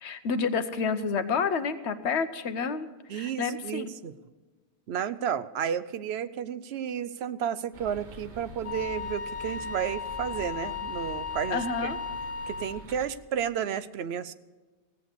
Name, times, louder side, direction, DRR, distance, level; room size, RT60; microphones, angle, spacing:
voice 1, 0.0-3.8 11.5-12.0, left 5 dB, 80° left, 10 dB, 1.1 m, -29 dB
voice 2, 3.1-4.1 4.9-11.9 12.5-14.3, right 8 dB, 70° right, 14 dB, 0.9 m, -32 dB
sound 1, 7.7-13.1, right 2 dB, 45° right, 1.3 m, -45 dB
Wind instrument woodwind instrument, 8.6-12.8, left 5 dB, 60° left, 1.5 m, -36 dB
16.5 x 8.0 x 6.7 m, 1.3 s
omnidirectional pair, 1.1 m